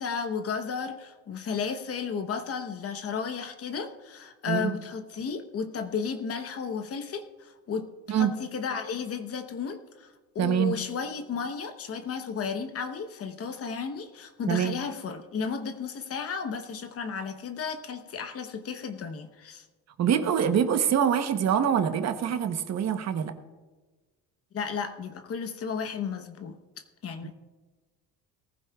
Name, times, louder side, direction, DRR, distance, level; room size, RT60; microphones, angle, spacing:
voice 1, 0.0-19.6 24.5-27.3, left 6 dB, 40° left, 9 dB, 1.0 m, -34 dB
voice 2, 10.4-10.8 14.5-14.8 20.0-23.3, right 8 dB, 45° right, 8 dB, 1.0 m, -25 dB
19.0 x 14.5 x 2.4 m, 1.3 s
cardioid pair, 125°, 37 cm